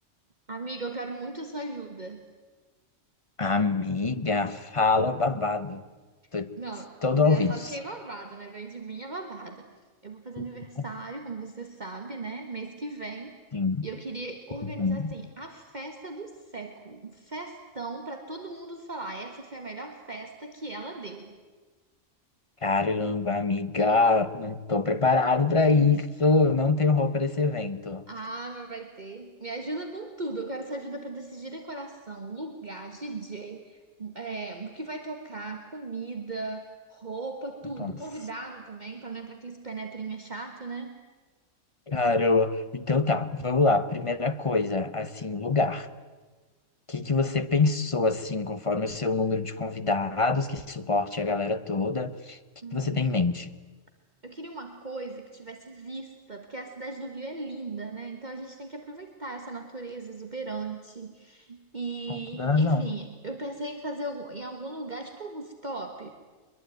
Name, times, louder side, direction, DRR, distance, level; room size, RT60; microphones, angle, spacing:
voice 1, 0.5-2.2 6.6-9.7 10.0-13.4 13.8-21.3 28.1-41.0 52.6-53.2 54.2-66.1, right 2 dB, 35° right, 4 dB, 1.6 m, -38 dB
voice 2, 3.4-5.8 6.3-6.5 7.0-7.5 10.4-10.5 10.8-10.9 13.5-13.9 14.6-15.1 22.6-28.0 37.8-37.9 41.9-45.9 46.9-52.4 52.7-53.5 62.1-62.9, left 3 dB, 30° left, 11 dB, 0.9 m, -25 dB
22.5 x 22.0 x 9.3 m, 1.3 s
omnidirectional pair, 1.3 m